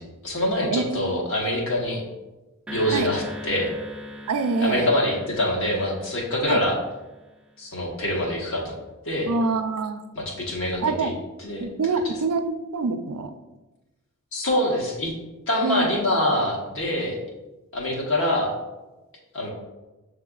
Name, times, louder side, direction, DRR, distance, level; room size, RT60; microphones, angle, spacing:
voice 1, 0.0-2.0 2.7-3.7 4.6-6.8 7.6-9.3 10.1-11.1 11.4-11.7 14.3-15.1 15.5-17.2 17.7-18.5 19.3-19.5, left 1 dB, 60° left, -2 dB, 1.1 m, -25 dB
voice 2, 0.7-1.2 2.9-3.1 4.3-4.9 6.5-6.6 9.2-10.0 10.8-11.2 11.6-13.3 15.6-16.0, right 4 dB, 90° right, 8 dB, 0.4 m, -25 dB
sound 1, 2.7-7.1, equal, 5° right, 0.4 m, -39 dB
6.6 x 3.3 x 2.4 m, 1.1 s
head